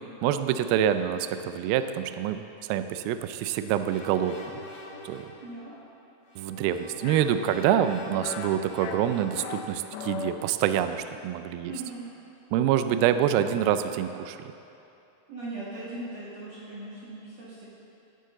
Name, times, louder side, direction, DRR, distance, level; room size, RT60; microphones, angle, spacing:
voice 1, 0.2-4.4 5.0-5.3 6.4-11.7 12.5-14.4, right 10 dB, 80° right, 10 dB, 2.2 m, -26 dB
sound 1, 3.9-5.5 6.2-9.9, left 1 dB, 60° left, 1.3 m, -44 dB
voice 2, 5.4-5.7 11.6-12.0 15.3-17.7, right 2 dB, 50° right, -9 dB, 2.6 m, -39 dB
sound 2, 7.0-7.2 7.6-7.9 8.2-8.5 8.8-9.6 9.9-10.3, left 8 dB, 75° left, 2.4 m, -37 dB
16.0 x 12.0 x 3.8 m, 2.8 s
omnidirectional pair, 4.7 m